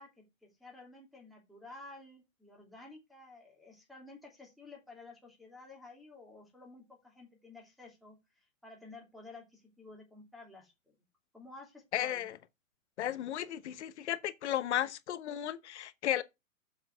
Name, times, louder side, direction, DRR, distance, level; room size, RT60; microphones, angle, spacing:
voice 1, 0.0-10.9 11.3-12.3, left 2 dB, ahead, 2.6 m, -53 dB
voice 2, 11.9-12.4 13.0-16.2, left 11 dB, 55° left, 1.1 m, -34 dB
7.3 x 6.0 x 6.1 m
hypercardioid pair, 155°, 41 cm